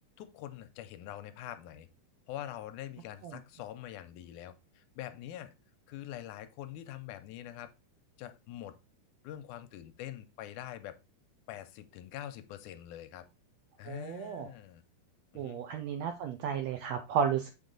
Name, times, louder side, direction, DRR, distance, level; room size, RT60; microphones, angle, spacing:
voice 1, 0.2-1.9 2.3-5.5 5.9-7.7 8.2-8.8 9.2-11.0 11.5-13.2 13.8-14.8 15.3-15.6, left 12 dB, 80° left, 2.0 m, -44 dB
voice 2, 13.8-14.5 15.3-17.5, right 7 dB, 80° right, 1.5 m, -33 dB
6.9 x 3.8 x 3.8 m
omnidirectional pair, 3.6 m